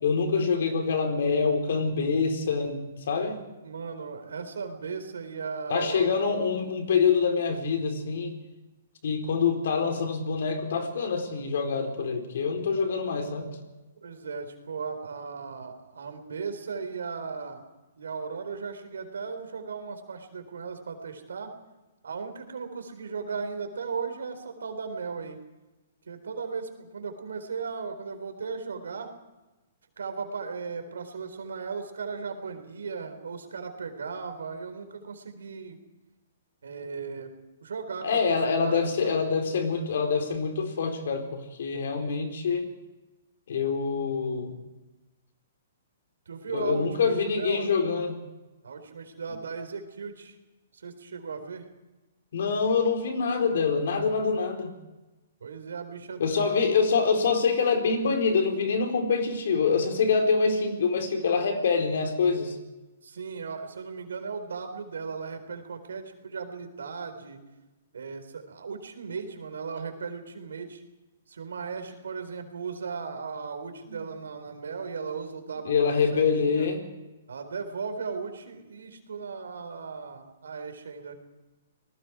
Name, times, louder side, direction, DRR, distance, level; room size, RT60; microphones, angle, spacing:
voice 1, 0.0-3.4 5.7-8.3 9.0-13.5 38.0-42.7 43.5-44.6 46.5-48.2 52.3-54.7 56.2-62.6 73.9-74.0 75.6-76.8, left 5 dB, 70° left, 5 dB, 4.2 m, -25 dB
voice 2, 3.6-6.3 14.0-17.6 18.0-21.5 22.0-25.4 26.1-29.1 30.0-35.8 36.6-37.3 37.6-39.2 46.3-47.7 48.6-50.4 50.7-51.6 55.4-56.6 63.0-67.4 67.9-70.8 71.3-76.7 77.3-81.2, right 5 dB, 90° right, 7 dB, 4.0 m, -36 dB
28.5 x 19.5 x 4.9 m, 1.1 s
hypercardioid pair, 150°, 0 cm